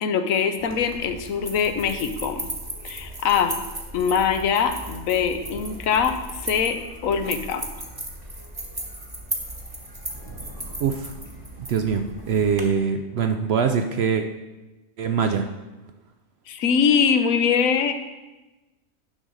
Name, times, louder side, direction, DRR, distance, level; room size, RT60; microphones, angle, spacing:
voice 1, 0.0-2.5 2.8-3.6 3.9-6.2 6.4-7.6 16.5-17.9, left 6 dB, 75° left, 8 dB, 1.1 m, -22 dB
sound 1, 0.6-12.6, right 1 dB, 20° right, 1.0 m, -36 dB
voice 2, 10.8-11.1 11.7-14.2 15.0-15.5, right 6 dB, 65° right, 6 dB, 0.7 m, -23 dB
10.0 x 3.9 x 6.3 m, 1.1 s
omnidirectional pair, 1.4 m